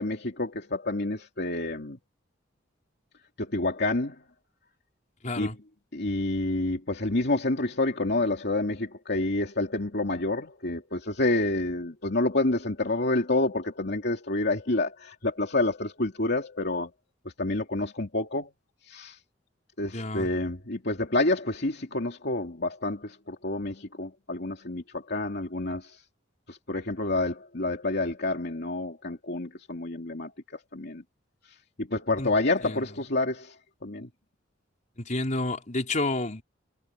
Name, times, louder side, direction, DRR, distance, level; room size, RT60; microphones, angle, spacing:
voice 1, 0.0-2.0 3.4-4.2 5.4-5.5 5.9-16.9 17.4-18.5 18.9-19.2 19.8-26.0 26.5-30.3 30.7-31.0 31.8-33.5 33.8-34.1, left 2 dB, 60° left, 2.6 m, -28 dB
voice 2, 5.2-5.6 19.9-20.3 32.2-32.3 32.6-32.9 35.0-36.4, left 2 dB, 40° left, 4.1 m, -30 dB
head